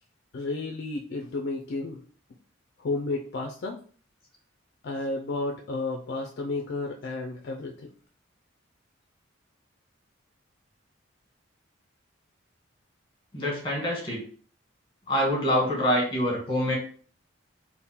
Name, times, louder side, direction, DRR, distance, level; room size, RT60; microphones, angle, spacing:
voice 1, 0.3-2.0 2.8-3.8 4.8-7.9, left 3 dB, 55° left, 1 dB, 0.4 m, -32 dB
voice 2, 13.3-14.2 15.1-16.7, equal, 25° left, -1 dB, 1.4 m, -25 dB
3.6 x 2.1 x 4.2 m, 0.43 s
head